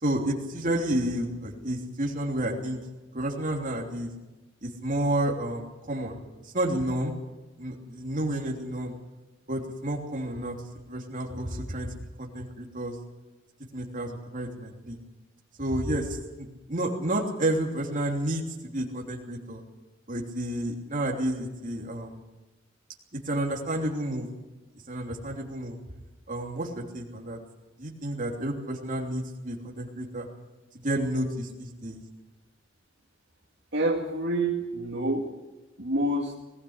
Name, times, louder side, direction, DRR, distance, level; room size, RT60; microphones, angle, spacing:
voice 1, 0.0-2.8 3.1-4.1 4.6-6.2 6.4-7.1 7.6-8.9 9.5-10.6 10.9-11.9 12.2-12.9 13.7-15.0 15.6-19.6 20.1-22.2 23.1-24.3 24.9-25.8 26.3-27.4 27.8-30.3 30.8-32.0, right 1 dB, 40° right, 0 dB, 3.2 m, -30 dB
voice 2, 33.7-35.3 35.8-36.3, right 1 dB, 65° right, 0 dB, 2.1 m, -27 dB
20.0 x 16.0 x 8.1 m, 1.1 s
head